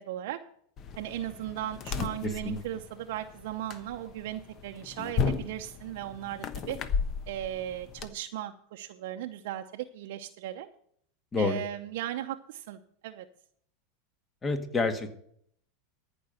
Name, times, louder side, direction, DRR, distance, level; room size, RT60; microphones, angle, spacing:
voice 1, 0.1-0.4 1.0-6.8 7.3-10.7 11.3-13.3, right 12 dB, 70° right, 4 dB, 0.7 m, -37 dB
sound 1, 0.8-8.1, left 6 dB, 40° left, 1.1 m, -35 dB
voice 2, 2.2-2.6 11.3-11.6 14.4-15.1, left 3 dB, 25° left, 8 dB, 1.7 m, -28 dB
14.0 x 5.4 x 7.8 m, 0.64 s
hypercardioid pair, 110°, 0 cm